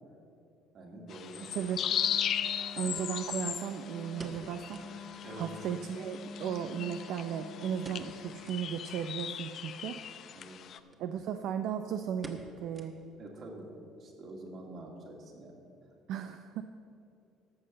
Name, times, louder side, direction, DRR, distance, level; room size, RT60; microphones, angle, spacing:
voice 1, 0.7-1.5 1.9-2.0 5.2-5.5 10.3-10.6 13.2-13.7 14.0-15.6, right 1 dB, 50° right, 0 dB, 2.4 m, -46 dB
sound 1, 1.1-10.8, left 9 dB, 55° left, 0.6 m, -37 dB
voice 2, 1.5-1.9 2.7-5.1 5.4-10.0 11.0-12.9 16.1-16.6, right 8 dB, 70° right, 8 dB, 0.5 m, -36 dB
Wind instrument woodwind instrument, 1.9-8.5, left 4 dB, 40° left, 1.9 m, -47 dB
sound 2, 3.7-5.0 5.3-5.4 5.7-5.8 6.5-7.3 7.8-8.2 8.4-8.7 9.2-9.3 10.3-10.5 10.9-11.0 11.3-11.7 12.2-13.3 13.6-13.7 14.3-14.6 14.9-15.0, right 2 dB, 25° right, 1.2 m, -49 dB
13.5 x 5.6 x 7.8 m, 2.6 s
cardioid pair, 100°, 0 cm